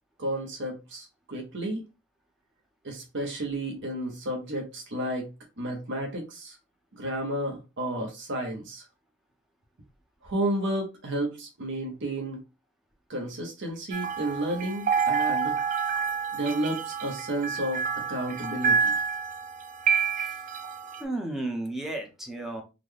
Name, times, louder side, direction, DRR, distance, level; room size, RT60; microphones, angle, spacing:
voice 1, 0.2-1.8 2.8-5.3 5.6-6.6 6.9-8.8 10.2-12.4 13.1-15.5 16.3-17.8 18.1-18.9, right 1 dB, 60° right, 2 dB, 0.9 m, -32 dB
sound 1, 13.9-21.0, right 6 dB, 40° right, 0.4 m, -28 dB
voice 2, 21.0-22.6, right 2 dB, ahead, 1 dB, 0.7 m, -33 dB
4.0 x 2.2 x 3.2 m, 0.28 s
head